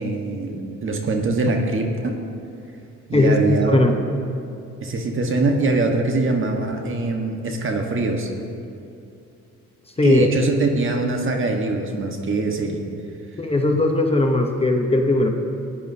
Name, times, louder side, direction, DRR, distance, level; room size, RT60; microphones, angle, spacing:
voice 1, 0.0-2.2 3.1-3.9 4.8-8.3 10.0-12.8, right 3 dB, 45° right, 3 dB, 1.4 m, -23 dB
voice 2, 3.1-4.0 10.0-10.3 13.4-15.3, left 2 dB, 20° left, 3 dB, 0.9 m, -18 dB
17.5 x 10.0 x 2.8 m, 2.6 s
cardioid pair, 90°, 30 cm